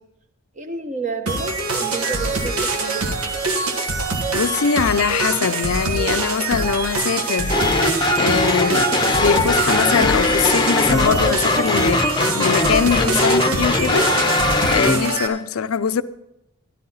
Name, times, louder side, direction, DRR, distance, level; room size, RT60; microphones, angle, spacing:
voice 1, 0.6-3.2, right 4 dB, 35° right, 1.1 m, -30 dB
sound 1, 1.3-15.3, right 3 dB, 80° right, 1.6 m, -24 dB
voice 2, 4.3-7.6 8.2-14.4 14.7-16.0, left 6 dB, 70° left, 0.5 m, -22 dB
sound 2, 7.5-15.1, left 2 dB, 20° left, 0.7 m, -20 dB
13.5 x 11.5 x 4.0 m
head